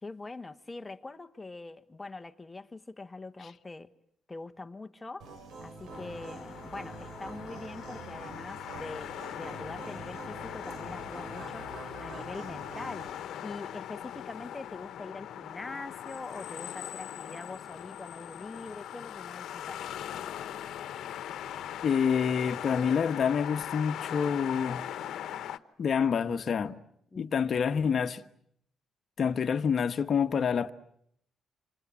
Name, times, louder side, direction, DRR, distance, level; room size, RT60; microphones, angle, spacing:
voice 1, 0.0-3.9 4.3-5.3 5.6-19.8 27.1-27.4, left 3 dB, 20° left, 1.3 m, -43 dB
sound 1, 5.2-13.1, right 3 dB, 75° right, 5.7 m, -45 dB
sound 2, 5.9-25.6, left 11 dB, 80° left, 1.1 m, -40 dB
voice 2, 21.8-24.9 25.8-26.8 27.2-28.2 29.2-30.7, left 7 dB, 50° left, 1.3 m, -27 dB
28.0 x 27.0 x 7.6 m
cardioid pair, 105°, 0 cm